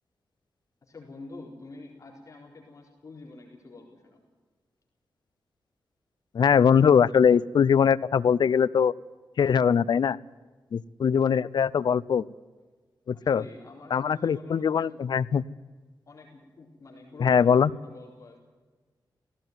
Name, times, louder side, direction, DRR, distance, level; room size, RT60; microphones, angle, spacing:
voice 1, 0.8-4.2 13.1-15.0 16.1-18.4, left 3 dB, 40° left, -1 dB, 4.3 m, -47 dB
voice 2, 6.3-8.9 9.4-10.2 10.7-12.2 13.1-13.4 13.9-15.4 17.2-17.7, left 7 dB, 65° left, 17 dB, 0.6 m, -21 dB
17.5 x 17.0 x 9.4 m, 1.3 s
wide cardioid pair, 170°, 8 cm